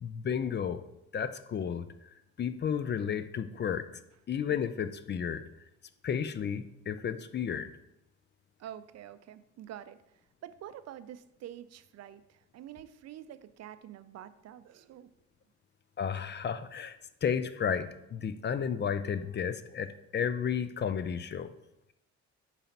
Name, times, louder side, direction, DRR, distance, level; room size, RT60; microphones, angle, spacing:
voice 1, 0.0-0.8 1.1-1.9 2.4-4.0 4.3-5.4 6.0-7.7 16.0-21.5, left 7 dB, 35° left, 12 dB, 0.4 m, -32 dB
voice 2, 8.6-10.0 10.4-15.1, right 11 dB, 60° right, 13 dB, 0.4 m, -47 dB
4.9 x 4.1 x 5.7 m, 0.86 s
cardioid pair, 90°, 30 cm